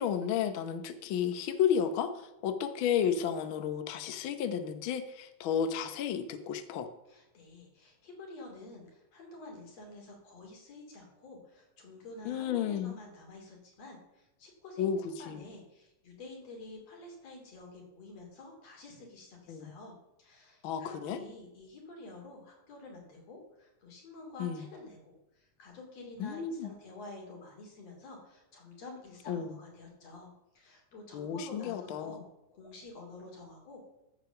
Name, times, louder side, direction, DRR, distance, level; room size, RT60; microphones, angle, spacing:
voice 1, 0.0-2.1 2.4-6.9 12.3-13.0 14.8-15.0 15.3-15.4 19.5-19.7 20.6-21.2 24.4-24.6 26.2-26.7 29.3-29.5 31.1-32.2, left 8 dB, 85° left, 9 dB, 1.1 m, -32 dB
voice 2, 7.1-30.3 30.5-32.2 32.5-33.8, left 2 dB, 55° left, 0 dB, 3.9 m, -49 dB
14.5 x 5.0 x 6.9 m, 0.93 s
omnidirectional pair, 3.5 m